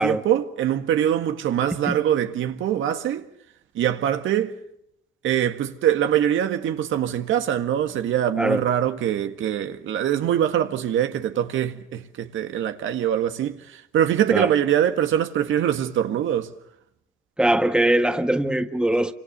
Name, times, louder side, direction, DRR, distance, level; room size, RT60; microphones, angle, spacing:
voice 1, 0.0-3.2 3.7-4.5 5.2-16.5, right 10 dB, 75° right, 1.8 m, -23 dB
voice 2, 17.4-19.1, right 1 dB, 5° right, 1.5 m, -21 dB
27.5 x 25.5 x 6.8 m
cardioid pair, 90°, 20 cm